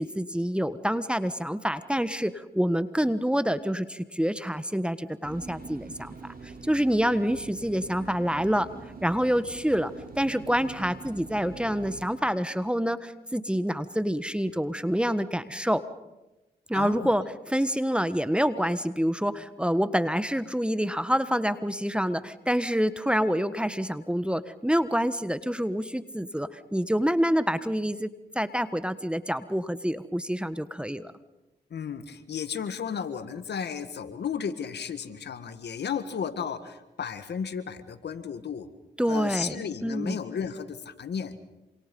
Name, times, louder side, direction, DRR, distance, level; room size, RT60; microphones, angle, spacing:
voice 1, 0.0-6.1 6.6-8.7 9.0-15.8 16.7-28.1 28.3-31.1 39.0-40.2, equal, 5° right, 13 dB, 1.4 m, -27 dB
sound 1, 5.2-12.1, right 4 dB, 55° right, 3.4 m, -44 dB
voice 2, 16.7-17.1 31.7-38.7 39.0-41.4, left 7 dB, 80° left, 11 dB, 1.8 m, -34 dB
27.0 x 26.5 x 5.4 m, 1.0 s
cardioid pair, 45°, 17 cm